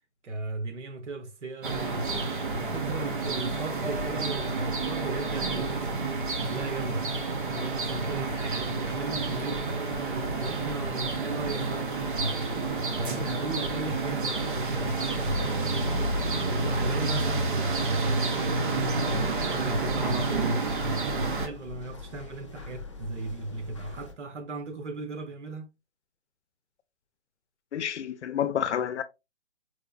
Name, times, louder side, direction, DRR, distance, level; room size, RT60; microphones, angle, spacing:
voice 1, 0.2-2.1 2.6-5.8 6.4-7.1 7.4-12.3 12.9-15.4 16.5-25.7, right 2 dB, 85° right, 1.0 m, -37 dB
sound 1, 1.6-21.5, right 3 dB, 45° right, 0.7 m, -29 dB
sound 2, 9.2-16.7, left 2 dB, 10° right, 0.6 m, -48 dB
sound 3, 19.0-24.1, left 3 dB, 30° left, 0.4 m, -43 dB
voice 2, 27.7-29.0, left 9 dB, 80° left, 0.6 m, -29 dB
4.6 x 2.4 x 2.3 m
hypercardioid pair, 170°, 34 cm